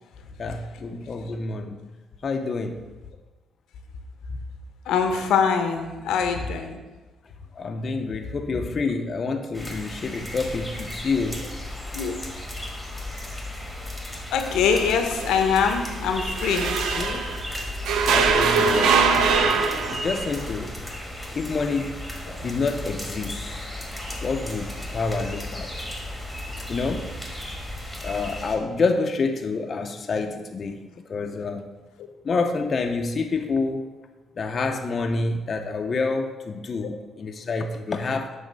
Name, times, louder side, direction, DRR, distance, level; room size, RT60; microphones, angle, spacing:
voice 1, 0.4-1.8 2.2-2.9 7.5-11.5 17.0-17.2 18.1-20.8 21.3-22.0 22.4-23.5 24.2-25.7 26.7-27.1 28.0-30.8 31.1-31.6 32.2-33.9 34.4-38.3, left 4 dB, 45° left, 5 dB, 0.5 m, -28 dB
voice 2, 4.9-6.8 11.9-12.2 14.3-16.7, left 6 dB, 85° left, 6 dB, 0.7 m, -23 dB
sound 1, 9.5-28.6, left 1 dB, 5° right, 1.4 m, -34 dB
sound 2, 14.7-17.5 17.9-20.3, right 5 dB, 80° right, 0.5 m, -23 dB
7.2 x 3.4 x 5.2 m, 1.2 s
cardioid pair, 90°, 0 cm